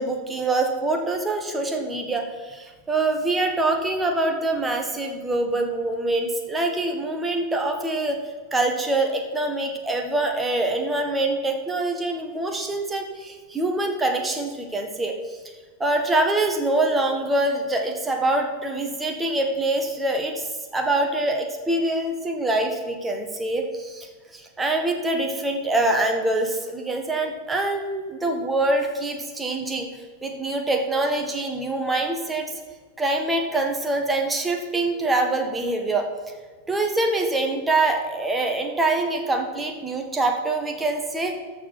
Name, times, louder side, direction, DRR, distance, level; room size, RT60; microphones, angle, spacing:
voice 1, 0.0-8.2 8.5-15.1 15.8-20.3 20.7-24.1 24.3-29.9 30.2-32.5 33.0-36.1 36.7-41.3, right 2 dB, 10° right, 3 dB, 1.6 m, -24 dB
13.5 x 4.9 x 6.3 m, 1.4 s
figure-of-eight pair, 90°, 0 cm